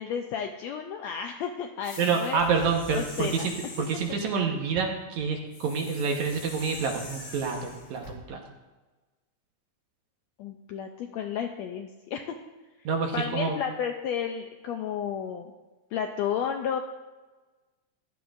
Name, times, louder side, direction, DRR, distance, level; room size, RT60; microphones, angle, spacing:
voice 1, 0.0-3.5 10.4-12.2 13.1-15.5 15.9-16.8, left 8 dB, 80° left, 4 dB, 1.6 m, -32 dB
sound 1, 1.8-4.2 5.5-8.2, left 2 dB, 40° left, 1.4 m, -44 dB
voice 2, 2.0-3.5 3.8-8.4 12.9-13.6, right 5 dB, 70° right, 2 dB, 2.3 m, -28 dB
15.0 x 11.0 x 2.5 m, 1.2 s
omnidirectional pair, 3.7 m